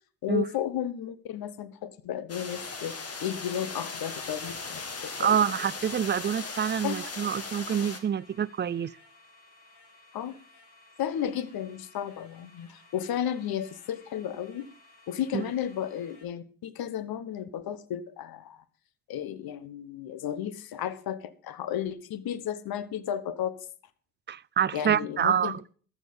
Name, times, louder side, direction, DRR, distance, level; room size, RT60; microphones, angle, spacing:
voice 1, 0.2-2.9 3.2-5.4 6.8-6.9 10.1-10.4 11.0-14.7 15.1-18.6 19.1-23.6 24.7-25.5, left 10 dB, 70° left, 1.1 m, -33 dB
sound 1, 2.3-8.0, left 4 dB, 40° left, 2.1 m, -38 dB
sound 2, 3.5-16.2, left 2 dB, 85° left, 4.6 m, -57 dB
voice 2, 5.2-8.9 15.3-15.5 24.3-25.6, right 8 dB, 30° right, 0.4 m, -27 dB
13.5 x 7.3 x 5.4 m
supercardioid pair, 75°, 38 cm